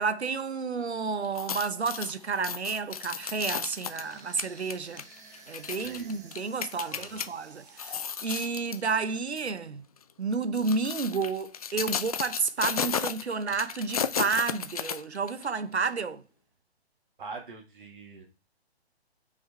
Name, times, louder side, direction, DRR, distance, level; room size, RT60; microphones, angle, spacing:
voice 1, 0.0-5.0 5.5-9.8 10.2-16.2, right 5 dB, 80° right, 0.7 m, -31 dB
sound 1, 1.2-7.3 7.7-8.9 9.3-9.5 10.3-15.5 15.8-15.9, left 7 dB, 35° left, 0.4 m, -34 dB
sound 2, 1.8-8.8, right 4 dB, 10° right, 0.9 m, -54 dB
voice 2, 5.8-6.2 6.9-7.3 17.2-18.2, right 4 dB, 50° right, 2.2 m, -44 dB
6.0 x 5.1 x 4.3 m
figure-of-eight pair, 130°, 33 cm